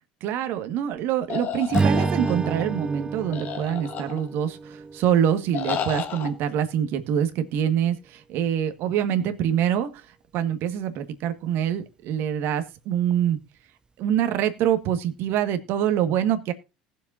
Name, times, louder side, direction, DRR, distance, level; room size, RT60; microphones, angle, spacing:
voice 1, 0.2-13.4 14.0-16.5, right 9 dB, 60° right, 9 dB, 1.8 m, -25 dB
sound 1, 1.3-2.6 3.3-4.5 5.5-6.3, left 8 dB, 50° left, 2.3 m, -32 dB
Strum, 1.7-6.1, right 4 dB, 20° right, 0.5 m, -29 dB
19.5 x 7.4 x 2.7 m, 0.28 s
hypercardioid pair, 75°, 4 cm